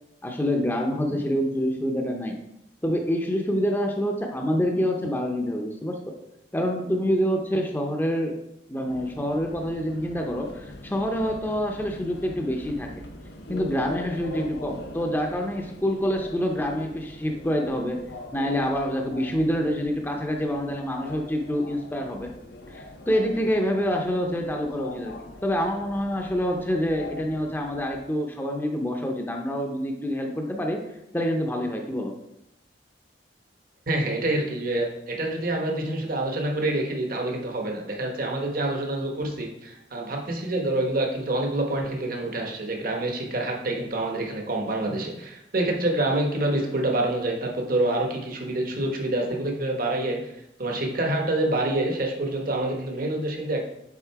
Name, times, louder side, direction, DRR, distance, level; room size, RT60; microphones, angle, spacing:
voice 1, 0.2-2.4 2.8-6.0 6.5-8.4 8.7-12.9 13.5-18.0 18.3-22.3 22.7-30.8 31.1-32.1, equal, 10° left, 2 dB, 0.6 m, -26 dB
Subway metro underground, 8.9-28.1, left 2 dB, 65° left, 0.7 m, -42 dB
voice 2, 33.9-50.2 50.6-53.6, right 1 dB, 55° right, 1 dB, 1.1 m, -27 dB
7.3 x 3.8 x 4.6 m, 0.85 s
head